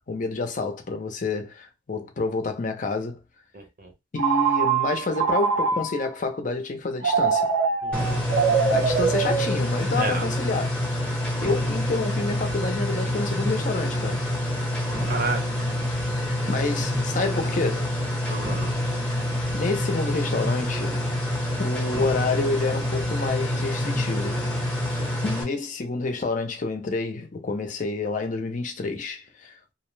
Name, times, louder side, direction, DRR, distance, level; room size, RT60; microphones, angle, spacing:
voice 1, 0.0-3.2 4.1-7.5 8.7-10.7 11.4-14.3 16.5-17.9 19.5-21.0 21.6-24.4 25.2-29.7, left 3 dB, 40° left, 0.5 m, -28 dB
voice 2, 3.5-3.9 7.8-8.1 10.0-10.2 15.0-15.7 18.3-18.7 24.9-25.1, right 3 dB, 50° right, 0.7 m, -31 dB
Telephone, 4.2-6.2 7.0-10.1, right 5 dB, 85° right, 0.9 m, -24 dB
sound 1, 7.9-25.4, left 1 dB, 5° left, 0.7 m, -27 dB
2.5 x 2.0 x 3.1 m
head